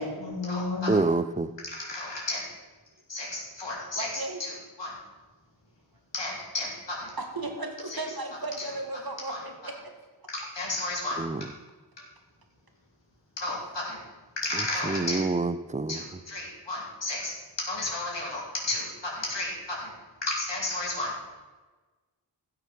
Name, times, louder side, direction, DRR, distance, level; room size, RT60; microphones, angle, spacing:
voice 1, 0.0-1.0 1.6-2.4 3.1-4.9 6.1-7.1 7.9-8.2 8.6-8.8 9.3-9.4 10.3-11.2 13.4-14.0 14.4-15.2 15.9-19.9 20.2-21.1, left 2 dB, 70° left, -4 dB, 3.7 m, -33 dB
voice 2, 0.9-1.5 11.2-11.4 14.8-16.0, right 3 dB, 15° right, 13 dB, 0.5 m, -26 dB
voice 3, 4.0-4.4 7.2-9.8, right 2 dB, 55° right, 4 dB, 2.1 m, -35 dB
15.0 x 6.7 x 6.5 m, 1.3 s
wide cardioid pair, 70°, 44 cm